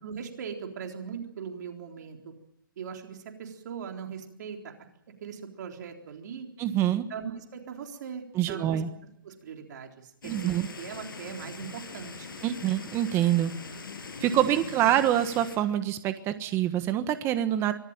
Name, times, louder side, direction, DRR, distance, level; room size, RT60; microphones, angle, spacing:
voice 1, 0.0-2.3 2.8-4.7 5.2-6.5 7.1-8.8 9.2-10.5 10.8-12.3 14.3-14.5 14.8-15.0, right 7 dB, 55° right, 3 dB, 3.9 m, -40 dB
voice 2, 6.6-7.0 8.3-8.9 10.2-10.7 12.4-13.5 14.2-17.7, right 12 dB, 20° right, 10 dB, 1.4 m, -25 dB
sound 1, 10.2-15.6, left 4 dB, 75° left, 6.9 m, -42 dB
24.5 x 16.5 x 8.9 m, 0.73 s
hypercardioid pair, 140°, 11 cm